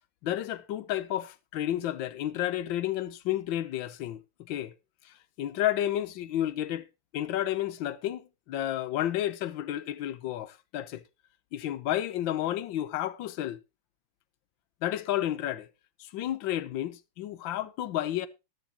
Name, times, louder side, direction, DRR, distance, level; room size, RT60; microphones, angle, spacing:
voice 1, 0.2-4.7 5.0-6.8 7.1-11.0 11.5-13.6 14.8-15.7 16.0-18.3, left 12 dB, 75° left, 1.5 m, -31 dB
14.5 x 11.0 x 2.9 m
omnidirectional pair, 2.2 m